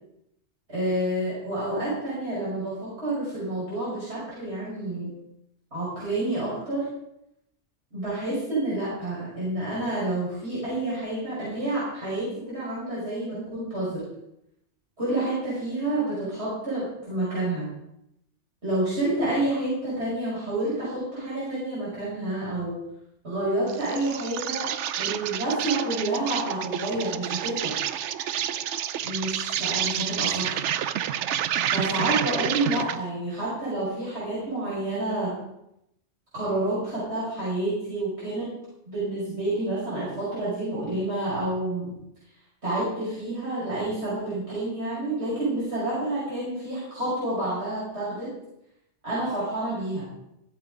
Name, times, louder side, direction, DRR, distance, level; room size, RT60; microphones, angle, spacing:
voice 1, 0.7-5.1 5.7-6.9 7.9-14.1 15.0-17.7 18.6-22.8 23.2-27.7 29.0-30.6 31.7-35.3 36.3-38.5 38.8-41.9 42.6-48.3 49.0-50.0, right 2 dB, 70° right, -9 dB, 6.0 m, -29 dB
Insect, 23.7-33.1, right 10 dB, 90° right, 0.9 m, -29 dB
14.0 x 8.1 x 5.0 m, 0.82 s
omnidirectional pair, 1.2 m